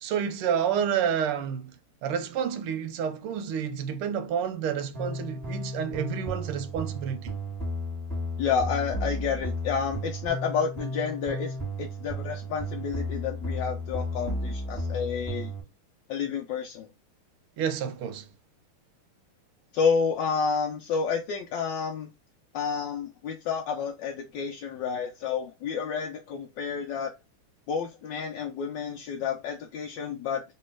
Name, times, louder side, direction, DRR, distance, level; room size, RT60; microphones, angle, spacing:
voice 1, 0.0-1.7 2.0-7.3 17.6-18.3, right 8 dB, 90° right, 1.6 m, -29 dB
sound 1, 4.9-15.6, equal, 10° left, 1.7 m, -33 dB
voice 2, 8.4-15.5 16.1-16.9 19.7-22.1 22.5-27.1 27.7-30.4, left 6 dB, 70° left, 1.1 m, -30 dB
3.3 x 3.1 x 3.1 m
omnidirectional pair, 2.4 m